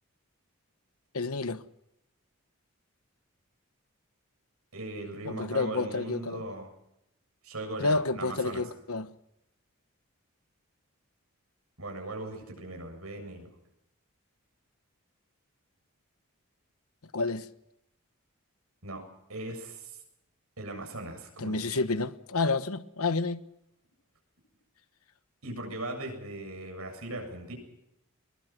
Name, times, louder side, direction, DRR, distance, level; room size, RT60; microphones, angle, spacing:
voice 1, 1.1-1.6 5.2-6.4 7.8-9.1 17.1-17.5 21.4-23.4, left 3 dB, 85° left, 1.2 m, -29 dB
voice 2, 4.7-6.7 7.4-8.6 11.8-13.5 18.8-19.0 19.3-20.0 20.6-21.8 25.4-27.5, right 2 dB, 85° right, 7.6 m, -39 dB
22.5 x 22.0 x 6.1 m
head